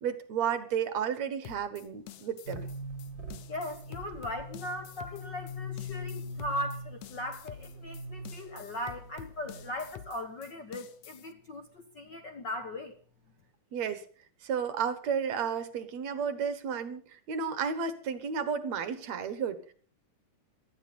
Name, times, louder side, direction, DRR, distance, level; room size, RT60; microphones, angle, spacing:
voice 1, 0.0-2.7 13.7-14.0 14.4-19.7, right 7 dB, 65° right, 2.4 m, -32 dB
sound 1, 1.4-11.3, left 11 dB, 70° left, 2.2 m, -48 dB
sound 2, 2.5-10.0, left 1 dB, 35° right, 4.4 m, -42 dB
voice 2, 3.5-12.9, left 1 dB, 50° left, 1.4 m, -38 dB
18.5 x 14.0 x 5.5 m
omnidirectional pair, 3.6 m